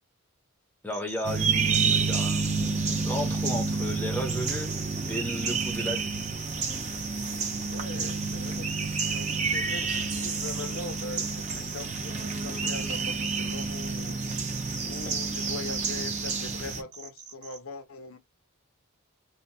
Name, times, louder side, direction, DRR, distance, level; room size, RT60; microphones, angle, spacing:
voice 1, 0.8-6.1, left 1 dB, 10° left, 0.6 m, -34 dB
sound 1, 0.9-3.9 4.3-17.6, right 7 dB, 85° right, 0.8 m, -44 dB
sound 2, 1.2-16.8, right 4 dB, 35° right, 0.7 m, -29 dB
voice 2, 7.7-14.2 14.8-18.2, left 3 dB, 65° left, 0.5 m, -41 dB
2.9 x 2.1 x 2.6 m
head